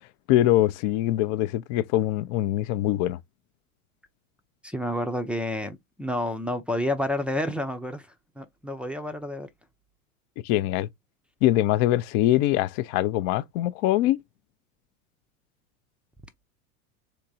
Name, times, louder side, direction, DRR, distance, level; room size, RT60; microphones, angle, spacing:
voice 1, 0.3-3.2 10.4-10.9 11.4-14.2, left 14 dB, 50° left, 0.5 m, -23 dB
voice 2, 4.6-8.1 8.4-9.5, left 1 dB, 5° right, 0.5 m, -29 dB
3.6 x 2.8 x 2.7 m
hypercardioid pair, 90°, 42 cm